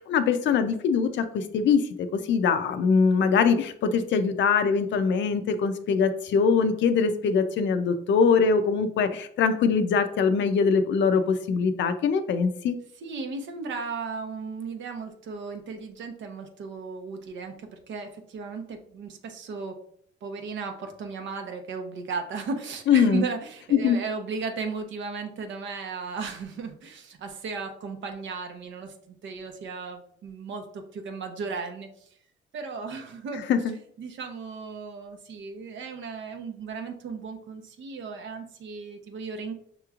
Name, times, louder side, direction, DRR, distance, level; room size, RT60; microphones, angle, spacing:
voice 1, 0.0-12.8 22.9-23.2 23.7-24.0 33.5-33.7, left 5 dB, 65° left, 9 dB, 0.5 m, -23 dB
voice 2, 13.0-19.8 20.2-32.1 32.5-33.5 34.0-39.5, right 4 dB, 70° right, 5 dB, 0.8 m, -35 dB
5.7 x 3.0 x 2.4 m, 0.64 s
cardioid pair, 90°, 20 cm